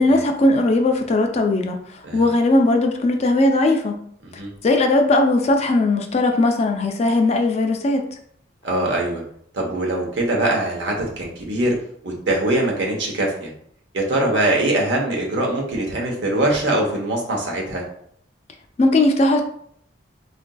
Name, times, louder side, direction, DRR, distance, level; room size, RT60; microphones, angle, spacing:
voice 1, 0.0-4.0 4.6-8.1 18.8-19.4, left 2 dB, 35° left, 4 dB, 0.4 m, -18 dB
voice 2, 8.6-9.2 9.5-11.8 12.0-13.5 13.9-17.8, right 1 dB, 75° right, 0 dB, 0.8 m, -22 dB
3.7 x 2.5 x 2.2 m, 0.66 s
head